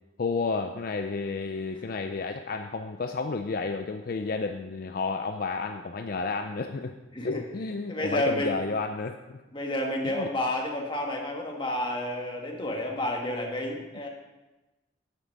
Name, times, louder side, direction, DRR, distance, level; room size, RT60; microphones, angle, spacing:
voice 1, 0.2-6.9 7.2-9.4 10.0-10.3, left 4 dB, 50° left, 6 dB, 0.4 m, -31 dB
voice 2, 7.9-8.5 9.5-14.1, left 1 dB, 25° left, 0 dB, 1.4 m, -30 dB
9.3 x 7.6 x 5.3 m, 1.1 s
head